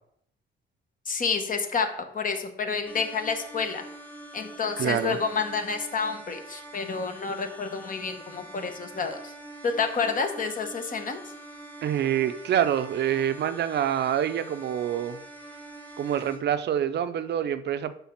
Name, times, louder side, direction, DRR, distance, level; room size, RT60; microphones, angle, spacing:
voice 1, 1.1-1.9 2.1-3.9 4.3-9.3 9.6-11.2, left 5 dB, 45° left, 7 dB, 1.0 m, -29 dB
sound 1, 2.9-16.4, right 1 dB, 10° left, 1.2 m, -45 dB
voice 2, 4.8-5.2 11.8-15.2 16.0-18.0, right 10 dB, 60° right, 12 dB, 0.5 m, -26 dB
5.7 x 3.4 x 5.8 m, 0.68 s
cardioid pair, 90°, 20 cm